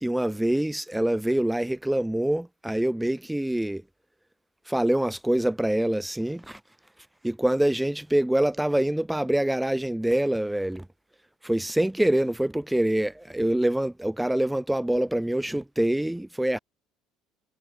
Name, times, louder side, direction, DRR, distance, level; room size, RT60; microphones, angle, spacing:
voice 1, 0.0-3.8 4.7-6.6 7.2-10.8 11.4-16.6, right 1 dB, 5° right, 1.1 m, -25 dB
figure-of-eight pair, 60°, 0 cm